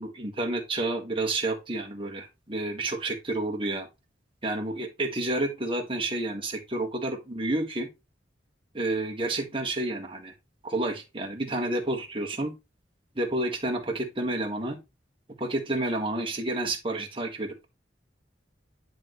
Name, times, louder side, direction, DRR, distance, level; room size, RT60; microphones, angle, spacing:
voice 1, 0.0-3.9 4.4-7.9 8.7-10.3 10.6-12.5 13.1-14.8 15.4-17.7, right 2 dB, 30° right, 1.7 m, -30 dB
10.5 x 4.0 x 3.1 m
head